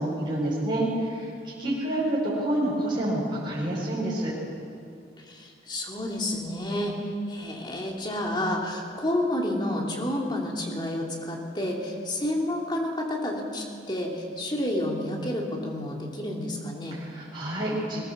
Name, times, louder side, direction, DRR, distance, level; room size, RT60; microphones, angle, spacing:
voice 1, 0.0-4.3 16.9-18.0, right 1 dB, 25° right, -6 dB, 5.5 m, -28 dB
voice 2, 5.2-17.0, left 1 dB, 25° left, -1 dB, 3.0 m, -30 dB
21.0 x 18.0 x 7.3 m, 2.4 s
head